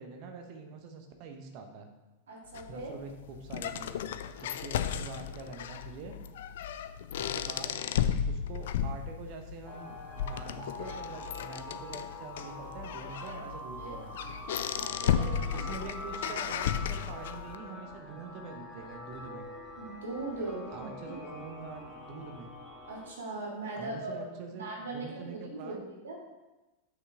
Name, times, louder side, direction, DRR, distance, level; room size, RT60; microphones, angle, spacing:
voice 1, 0.0-1.9 2.7-6.2 7.2-7.8 8.3-14.1 15.2-19.5 20.7-22.5 23.7-25.9, right 4 dB, 45° right, 5 dB, 1.0 m, -45 dB
voice 2, 2.3-2.9 13.8-14.0 14.5-15.6 19.8-21.3 22.9-24.2 24.6-26.2, right 2 dB, 65° right, -3 dB, 2.2 m, -40 dB
sound 1, 2.5-17.5, left 9 dB, 55° left, 0.4 m, -34 dB
sound 2, 9.7-23.1, left 1 dB, 15° left, 1.7 m, -44 dB
7.7 x 5.8 x 3.7 m, 1.1 s
figure-of-eight pair, 90°, 0 cm